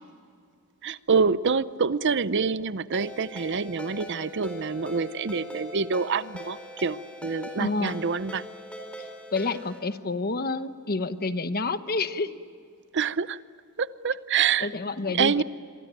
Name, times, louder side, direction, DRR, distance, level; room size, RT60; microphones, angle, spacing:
voice 1, 0.8-8.4 12.9-13.4 13.8-14.7 15.1-15.4, right 5 dB, 55° right, 16 dB, 0.7 m, -26 dB
Ringtone, 2.9-9.8, left 1 dB, 5° left, 4.2 m, -41 dB
voice 2, 7.6-8.1 9.0-12.3 14.6-15.4, left 3 dB, 45° left, 11 dB, 1.1 m, -29 dB
28.0 x 23.0 x 9.0 m, 2.3 s
head